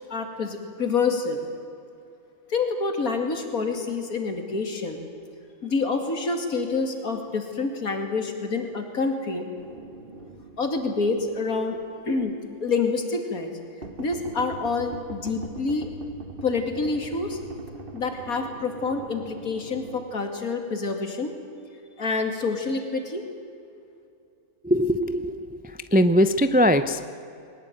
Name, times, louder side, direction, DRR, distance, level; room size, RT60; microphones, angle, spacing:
voice 1, 0.1-1.4 2.5-5.0 5.6-9.4 10.6-11.8 12.1-12.3 12.6-13.5 14.0-15.9 16.4-17.4 17.9-21.3 22.0-23.2, left 4 dB, 80° left, 5 dB, 2.9 m, -27 dB
sound 1, 9.6-11.8 12.2-12.3 13.8-20.0, right 2 dB, 40° right, 1.5 m, -41 dB
voice 2, 24.6-27.1, equal, 15° right, 11 dB, 0.3 m, -21 dB
21.5 x 19.0 x 9.2 m, 2.6 s
omnidirectional pair, 1.5 m